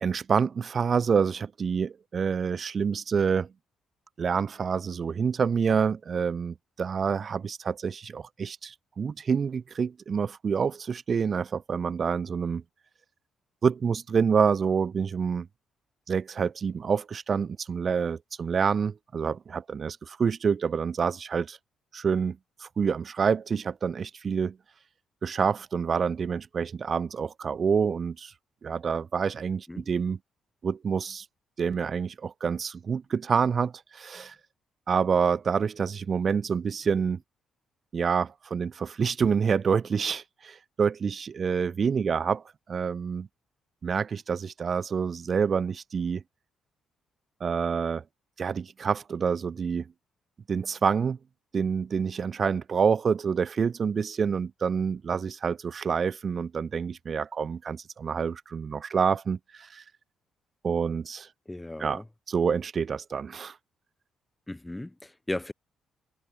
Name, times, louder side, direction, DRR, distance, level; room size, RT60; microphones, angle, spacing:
voice 1, 0.0-3.5 4.2-12.6 13.6-15.5 16.1-21.6 21.9-24.6 25.2-28.3 28.6-30.2 30.6-31.2 31.6-34.3 34.9-37.2 37.9-42.4 42.7-43.3 43.8-46.2 47.4-48.0 48.4-49.9 50.5-51.2 51.5-59.8 60.6-61.3 61.8-62.0 62.3-63.5, right 6 dB, 45° right, 0.7 m, -27 dB
voice 2, 61.5-62.1 64.5-65.5, left 1 dB, 10° left, 4.4 m, -36 dB
cardioid pair, 90°, 0 cm